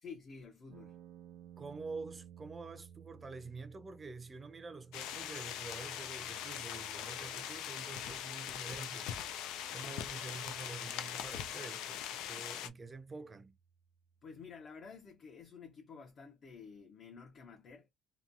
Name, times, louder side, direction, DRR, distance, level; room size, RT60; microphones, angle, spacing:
voice 1, 0.0-1.0 14.2-17.9, left 5 dB, 45° left, 0.7 m, -51 dB
sound 1, 0.7-14.7, right 9 dB, 85° right, 0.4 m, -60 dB
voice 2, 1.6-9.1 9.7-13.5, right 4 dB, 25° right, 0.5 m, -47 dB
sound 2, 4.9-12.7, left 10 dB, 85° left, 0.3 m, -41 dB
2.9 x 2.2 x 2.5 m
cardioid pair, 115°, 0 cm